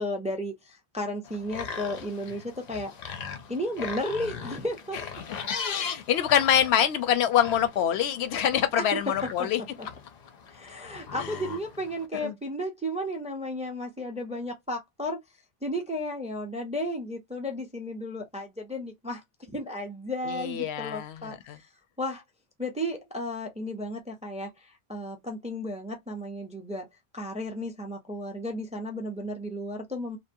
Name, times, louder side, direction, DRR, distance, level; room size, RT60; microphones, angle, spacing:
voice 1, 0.0-2.9 3.5-5.1 9.4-9.5 9.8-9.9 10.5-15.2 15.6-19.2 19.5-21.7 22.0-22.2 22.6-26.9 27.1-30.2, left 1 dB, 10° right, 0.4 m, -34 dB
sound 1, 1.2-12.1, left 6 dB, 55° left, 0.5 m, -39 dB
voice 2, 5.7-9.6 11.2-11.3 12.2-12.3 20.3-21.6, left 10 dB, 85° left, 0.8 m, -25 dB
2.8 x 2.0 x 2.6 m
omnidirectional pair, 1.1 m